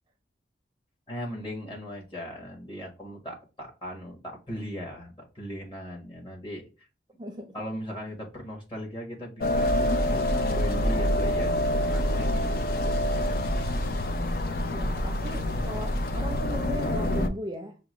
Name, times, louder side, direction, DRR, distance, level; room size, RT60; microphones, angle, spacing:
voice 1, 1.1-6.9 7.5-9.7 10.1-13.7, equal, 30° left, 1.5 m, -39 dB
sound 1, 9.4-17.3, left 1 dB, 55° left, 0.5 m, -26 dB
voice 2, 14.7-17.8, equal, 25° right, 0.5 m, -37 dB
5.9 x 2.1 x 3.1 m
head